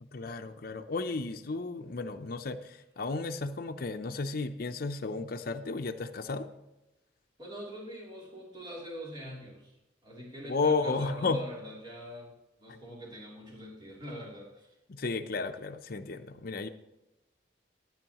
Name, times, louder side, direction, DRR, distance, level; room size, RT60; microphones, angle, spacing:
voice 1, 0.0-6.5 10.4-11.4 14.9-16.7, left 3 dB, 55° left, 7 dB, 0.6 m, -33 dB
voice 2, 7.4-9.8 10.0-12.3 12.6-14.7, equal, 25° right, -4 dB, 3.1 m, -43 dB
14.0 x 9.5 x 3.0 m, 0.94 s
head